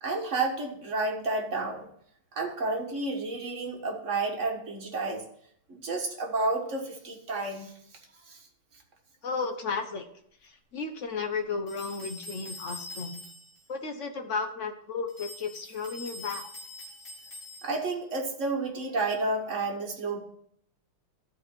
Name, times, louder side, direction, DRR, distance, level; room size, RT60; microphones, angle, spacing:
voice 1, 0.0-1.9 2.3-5.2 5.7-7.7 8.3-8.4 17.6-20.2, right 3 dB, 40° right, 1 dB, 1.7 m, -31 dB
voice 2, 9.2-10.1 10.4-13.2 13.7-16.4, left 4 dB, 55° left, 6 dB, 0.9 m, -34 dB
sound 1, 11.7-13.6 15.1-18.0, left 2 dB, 30° left, 3.1 m, -44 dB
13.5 x 4.5 x 4.4 m, 0.67 s
omnidirectional pair, 2.3 m